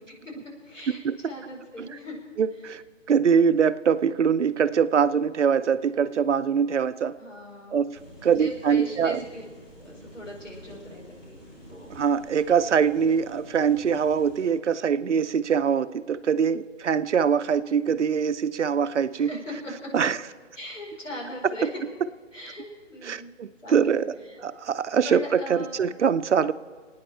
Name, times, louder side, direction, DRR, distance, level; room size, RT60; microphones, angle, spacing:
voice 1, 0.6-2.2 7.2-7.8 8.2-9.5 9.8-12.0 19.2-19.9 20.6-21.7 22.3-24.4 25.0-25.8, left 1 dB, 75° left, -1 dB, 4.9 m, -39 dB
voice 2, 2.4-2.8 3.1-7.1 7.7-9.2 11.9-19.3 19.9-20.2 23.0-24.1 24.4-26.5, right 7 dB, 65° right, 13 dB, 0.7 m, -23 dB
sound 1, 7.9-14.5, equal, 25° left, 5.6 m, -48 dB
28.0 x 9.6 x 4.3 m, 1.5 s
figure-of-eight pair, 150°, 37 cm